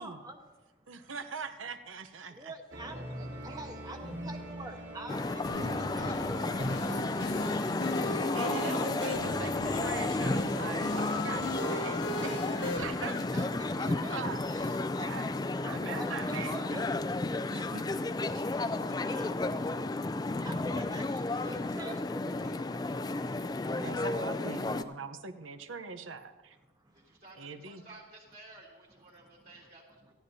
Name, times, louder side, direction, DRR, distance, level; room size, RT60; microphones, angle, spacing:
voice 1, 0.0-1.1 2.3-8.1 12.3-14.3 15.6-17.5 18.3-24.0 26.7-27.2 29.1-29.7, right 1 dB, 20° right, 3 dB, 1.2 m, -47 dB
voice 2, 0.9-2.5 8.3-15.3 15.7-16.8 17.5-18.0 18.3-18.7 23.7-26.6 27.4-27.8, right 4 dB, 90° right, 10 dB, 0.9 m, -42 dB
sound 1, 2.7-12.6, equal, 65° right, 3.2 m, -45 dB
sound 2, 5.1-24.8, left 2 dB, 20° left, 0.3 m, -32 dB
sound 3, 5.5-12.8, left 1 dB, 65° left, 1.0 m, -37 dB
voice 3, 7.9-8.8 26.9-30.1, right 2 dB, 45° right, -3 dB, 3.2 m, -54 dB
18.0 x 14.0 x 2.8 m, 1.2 s
head